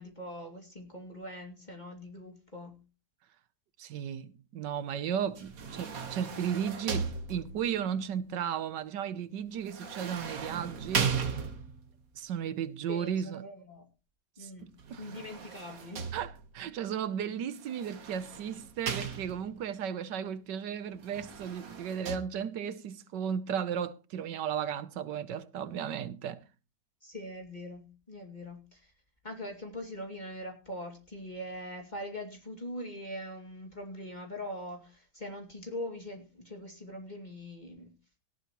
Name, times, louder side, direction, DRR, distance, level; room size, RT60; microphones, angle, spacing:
voice 1, 0.0-2.8 12.9-13.9 14.4-16.1 27.0-28.9 29.2-37.9, left 1 dB, 25° left, 2.6 m, -42 dB
voice 2, 3.8-11.2 12.2-13.5 14.4-15.0 16.1-26.4, right 8 dB, 80° right, 1.5 m, -35 dB
sound 1, 5.3-7.8 9.7-11.9 14.8-16.6 17.6-19.6 21.0-22.2, right 6 dB, 55° right, 1.7 m, -37 dB
17.5 x 12.0 x 3.1 m
omnidirectional pair, 1.9 m